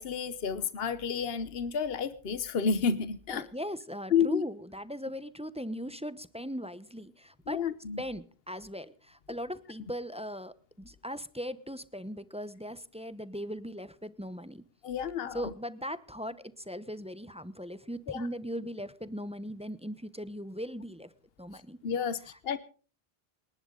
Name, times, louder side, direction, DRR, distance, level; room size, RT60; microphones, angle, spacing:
voice 1, 0.0-3.5 4.1-4.4 7.5-8.0 14.8-15.4 18.1-18.2 21.8-22.2 22.4-22.6, left 6 dB, 70° left, 14 dB, 1.2 m, -30 dB
voice 2, 3.3-7.6 8.0-14.6 15.3-21.1 21.4-21.8 22.2-22.4, equal, 5° right, 14 dB, 0.8 m, -39 dB
28.0 x 11.0 x 3.9 m, 0.39 s
omnidirectional pair, 1.0 m